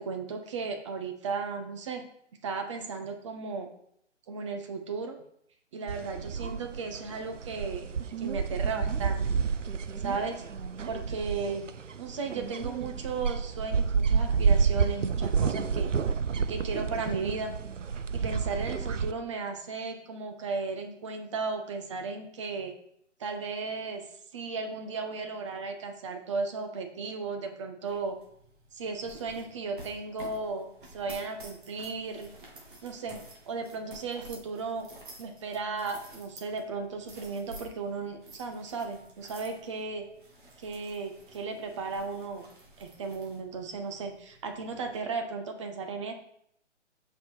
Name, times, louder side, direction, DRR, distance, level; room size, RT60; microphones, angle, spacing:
voice 1, 0.0-2.1 2.4-3.7 4.3-5.2 5.7-7.9 8.2-9.6 10.0-10.4 10.9-11.7 12.0-15.9 16.5-17.5 18.1-22.7 23.2-24.0 24.3-28.2 28.7-32.3 32.8-33.2 33.5-34.9 35.2-40.1 40.6-42.5 42.8-46.1, right 4 dB, 25° right, 5 dB, 0.9 m, -35 dB
sound 1, 5.9-19.1, right 6 dB, 80° right, 0.6 m, -29 dB
sound 2, 27.9-45.0, right 1 dB, 45° right, 2.1 m, -51 dB
6.1 x 5.8 x 4.7 m, 0.71 s
figure-of-eight pair, 140°, 36 cm